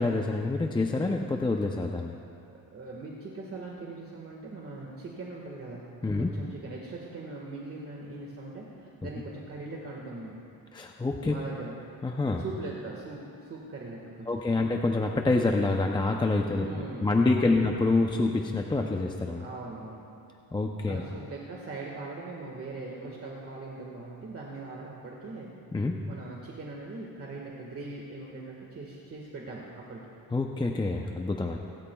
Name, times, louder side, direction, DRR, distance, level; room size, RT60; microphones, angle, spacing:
voice 1, 0.0-2.1 6.0-6.3 10.7-11.4 12.0-12.4 14.3-16.7 17.0-19.4 20.5-21.0 25.7-26.0 30.3-31.6, left 3 dB, 15° left, 2 dB, 0.6 m, -27 dB
voice 2, 2.5-5.8 6.2-10.4 11.2-11.8 12.4-14.7 16.6-17.1 17.4-17.7 19.4-20.0 20.8-25.5 26.1-30.0, right 3 dB, 40° right, -2 dB, 1.6 m, -41 dB
28.5 x 13.0 x 2.3 m, 2.5 s
cardioid pair, 135°, 36 cm